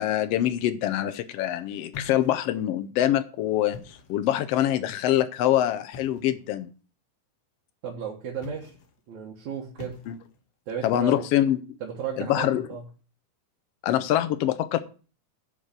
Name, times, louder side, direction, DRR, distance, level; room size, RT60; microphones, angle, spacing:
voice 1, 0.0-6.7 10.1-10.2 10.8-11.6 12.2-12.7 13.8-14.8, left 12 dB, 85° left, 10 dB, 1.3 m, -24 dB
sound 1, 1.9-2.7 3.6-4.3 5.9-6.4 8.3-9.0 9.8-10.5, left 4 dB, 65° left, 2.1 m, -44 dB
voice 2, 7.8-8.7 9.1-10.0 10.7-11.3 11.8-12.8, right 7 dB, 65° right, -2 dB, 2.6 m, -34 dB
10.0 x 4.8 x 6.6 m, 0.37 s
omnidirectional pair, 3.6 m